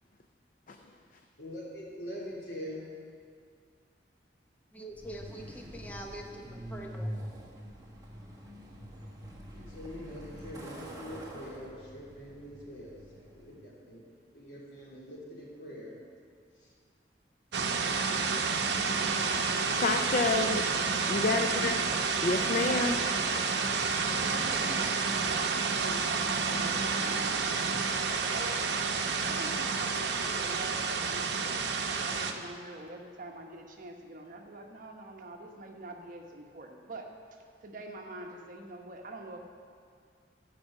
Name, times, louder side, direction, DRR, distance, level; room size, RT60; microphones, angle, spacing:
voice 1, 1.4-2.8 9.5-14.0 14.3-16.0 16.6-16.7, equal, 75° left, -4 dB, 3.1 m, -44 dB
voice 2, 4.7-7.1, right 1 dB, 10° left, 1 dB, 0.8 m, -44 dB
Truck, 4.9-13.6, equal, 20° right, 1.4 m, -45 dB
sound 1, 17.5-32.3, right 5 dB, 70° right, 0.8 m, -30 dB
voice 3, 19.8-20.7 21.1-21.8 22.2-23.0, left 3 dB, 50° left, 5 dB, 0.5 m, -28 dB
voice 4, 22.3-22.9 24.3-28.8 29.1-39.5, right 2 dB, 50° right, 2 dB, 1.2 m, -45 dB
12.0 x 5.5 x 7.6 m, 2.2 s
head